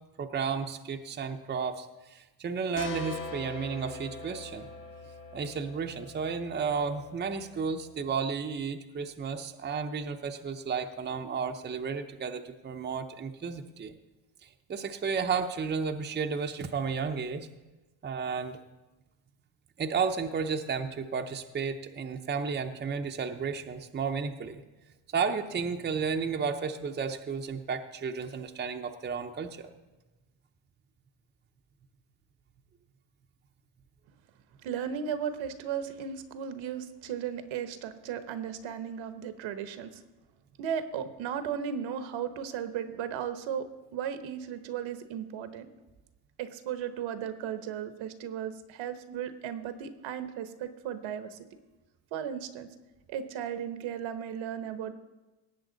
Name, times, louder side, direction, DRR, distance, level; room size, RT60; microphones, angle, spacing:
voice 1, 0.2-4.7 5.3-13.9 14.4-17.5 18.0-18.6 19.8-24.6 25.1-29.7, right 5 dB, 20° right, 5 dB, 0.7 m, -33 dB
sound 1, 2.8-8.2, left 3 dB, 80° left, 2.3 m, -43 dB
voice 2, 34.6-40.0 40.6-43.7 43.9-45.7 46.4-51.5 52.1-52.7 53.1-54.9, right 8 dB, 65° right, 10 dB, 1.1 m, -35 dB
17.5 x 7.8 x 3.9 m, 1.1 s
cardioid pair, 100°, 49 cm